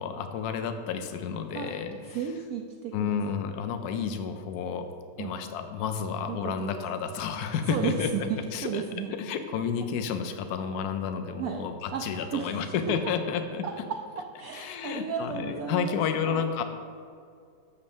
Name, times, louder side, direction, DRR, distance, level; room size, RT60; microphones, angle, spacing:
voice 1, 0.0-2.0 2.9-4.9 5.2-8.1 8.5-8.8 9.1-13.7 14.5-16.6, left 7 dB, 70° left, 8 dB, 1.1 m, -31 dB
voice 2, 2.1-3.2 5.2-5.3 6.3-6.8 7.7-9.1 11.4-13.0 13.6-13.7 14.4-16.5, right 7 dB, 65° right, 2 dB, 1.0 m, -34 dB
6.5 x 6.3 x 7.2 m, 2.3 s
omnidirectional pair, 1.8 m